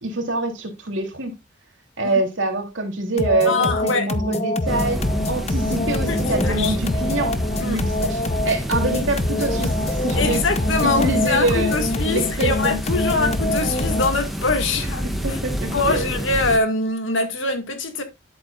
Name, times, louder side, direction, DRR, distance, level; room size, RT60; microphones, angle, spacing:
voice 1, 0.0-1.3 2.0-10.4 10.8-11.8 12.1-12.8 15.2-16.1, right 2 dB, 70° right, 3.0 m, -25 dB
sound 1, 3.2-14.3, left 2 dB, 30° left, 0.7 m, -25 dB
voice 2, 3.5-4.1 6.1-6.2 6.4-6.8 7.6-7.8 10.2-15.1 15.7-18.0, left 3 dB, 70° left, 1.9 m, -23 dB
sound 2, 4.7-16.6, equal, ahead, 1.5 m, -27 dB
10.5 x 8.5 x 2.4 m
head